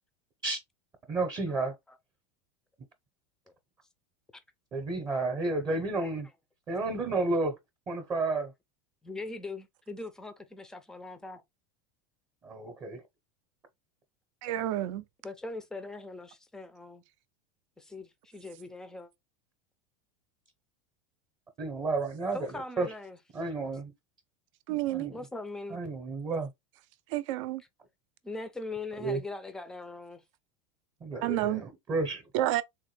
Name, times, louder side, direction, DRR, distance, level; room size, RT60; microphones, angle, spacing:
voice 1, 1.1-1.7 4.7-6.3 6.7-7.6 7.9-8.5 12.4-13.0 21.6-22.9 23.3-23.9 24.9-25.2 25.7-26.5 29.0-29.2 31.0-32.2, right 3 dB, 25° right, 0.7 m, -31 dB
voice 2, 5.5-6.1 9.0-11.4 15.2-17.0 17.8-19.1 22.3-23.2 25.1-25.8 28.2-30.2, left 3 dB, 5° left, 0.4 m, -41 dB
voice 3, 14.4-15.0 24.7-25.1 27.1-27.6 31.2-31.6 32.3-32.6, right 14 dB, 65° right, 0.4 m, -29 dB
3.5 x 2.2 x 3.2 m
supercardioid pair, 145°, 18 cm